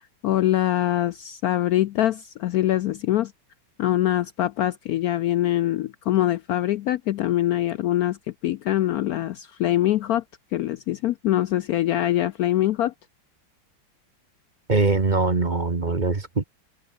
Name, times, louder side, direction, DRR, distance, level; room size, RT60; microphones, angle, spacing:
voice 1, 0.2-3.3 3.8-8.2 8.4-10.2 10.5-12.9, left 13 dB, 90° left, 0.8 m, -23 dB
voice 2, 14.7-16.4, right 3 dB, 25° right, 1.5 m, -22 dB
omnidirectional pair, 2.2 m